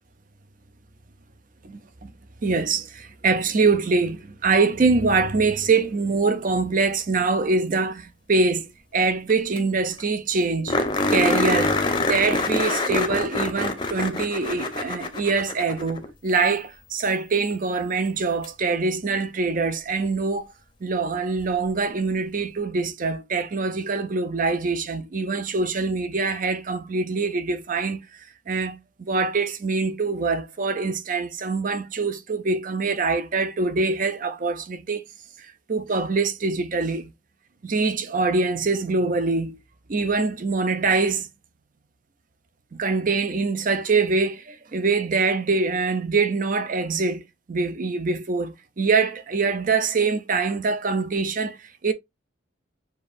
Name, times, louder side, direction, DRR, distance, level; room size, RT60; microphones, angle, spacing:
voice 1, 1.6-2.1 2.4-10.8 11.1-11.8 12.1-20.5 20.8-28.0 28.5-28.8 29.1-35.0 35.7-37.1 37.6-39.6 39.9-41.3 42.7-47.2 47.5-51.6 51.8-51.9, right 4 dB, 40° right, 0.5 m, -24 dB
sound 1, 9.3-9.4 9.6-9.7 10.0-10.1 10.7-16.1 18.4-18.5 21.4-21.5, left 2 dB, 25° left, 0.7 m, -25 dB
6.8 x 2.6 x 2.4 m
head